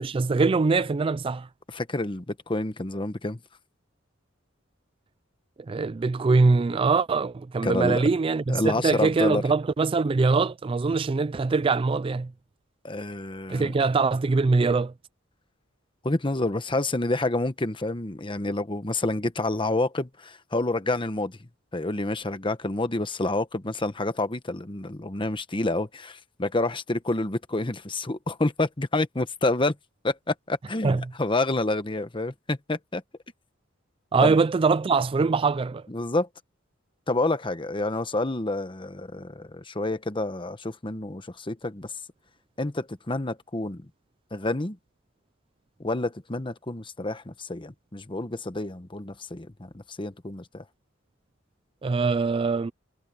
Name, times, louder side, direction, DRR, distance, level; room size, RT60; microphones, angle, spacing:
voice 1, 0.0-1.5 5.7-12.3 13.5-14.9 30.8-31.0 34.1-35.8 51.8-52.7, right 4 dB, 25° right, 0.3 m, -23 dB
voice 2, 1.7-3.4 7.6-8.0 8.5-9.4 12.8-13.7 16.0-21.4 21.7-29.7 30.0-33.0 34.2-34.4 35.9-36.3 37.1-41.9 42.6-43.9 44.3-44.8 45.8-50.6, left 2 dB, 25° left, 1.1 m, -28 dB
head